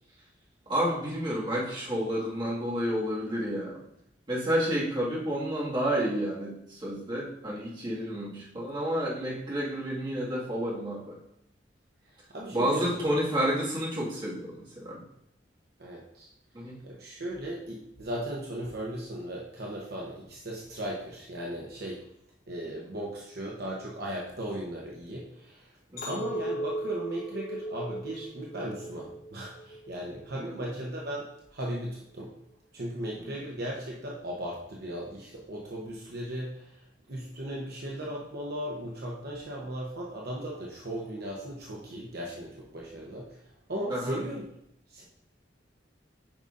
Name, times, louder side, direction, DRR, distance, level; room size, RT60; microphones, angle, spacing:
voice 1, 0.7-3.8 4.3-11.2 12.5-15.0 16.5-16.8 25.9-26.2 30.3-30.6 33.2-33.3 43.9-44.2, equal, 25° right, -6 dB, 2.0 m, -30 dB
voice 2, 12.1-13.1 15.8-16.3 16.8-22.0 22.5-25.8 26.1-32.3 32.7-44.4 44.9-45.0, right 1 dB, 60° right, -3 dB, 1.0 m, -37 dB
Chink clink, 26.0-30.3 30.8-31.2, right 1 dB, 55° left, 2.8 m, -37 dB
8.8 x 5.5 x 2.6 m, 0.77 s
head